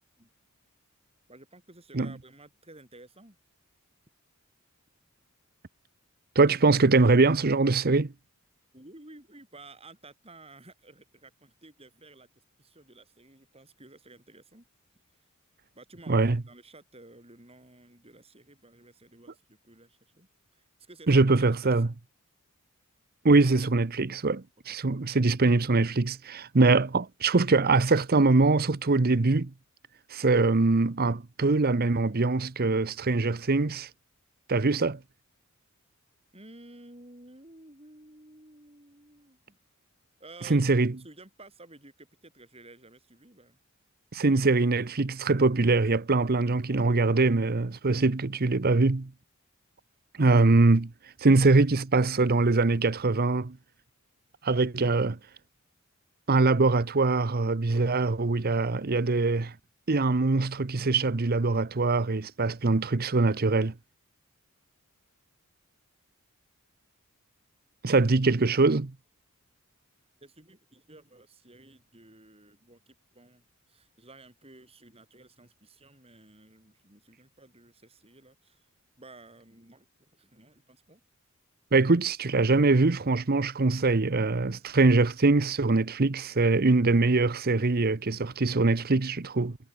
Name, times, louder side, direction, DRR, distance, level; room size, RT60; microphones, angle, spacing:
voice 1, 1.3-3.4 8.7-14.7 15.7-21.2 21.6-21.7 24.7-25.2 36.3-39.6 40.2-43.6 70.2-78.6 79.0-81.0, right 2 dB, 25° right, 7.7 m, -53 dB
voice 2, 6.4-8.1 16.1-16.4 21.1-21.9 23.2-29.5 30.1-33.9 34.5-35.0 40.5-40.9 44.1-49.1 50.2-50.9 51.2-53.6 54.4-55.2 56.3-59.5 59.9-63.7 67.8-68.9 81.7-89.6, right 3 dB, 45° right, 0.8 m, -23 dB
head